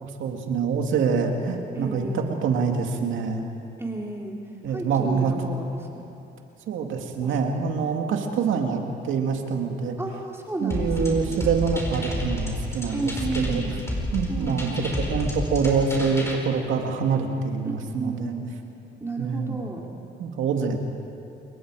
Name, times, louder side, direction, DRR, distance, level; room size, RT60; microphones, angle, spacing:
voice 1, 0.0-3.5 4.6-5.3 6.7-9.9 10.6-13.6 14.1-18.4 19.2-19.6 20.2-20.8, right 5 dB, 80° right, 3 dB, 2.3 m, -25 dB
voice 2, 1.7-2.4 3.8-4.3 4.7-5.8 7.2-7.3 10.0-11.3 12.9-13.7 14.3-14.9 17.6-18.5 19.0-19.8, right 3 dB, 10° right, -2 dB, 3.2 m, -32 dB
sound 1, 10.7-16.3, left 1 dB, 15° left, 5.1 m, -30 dB
28.0 x 22.5 x 5.0 m, 2.9 s
cardioid pair, 90°, 20 cm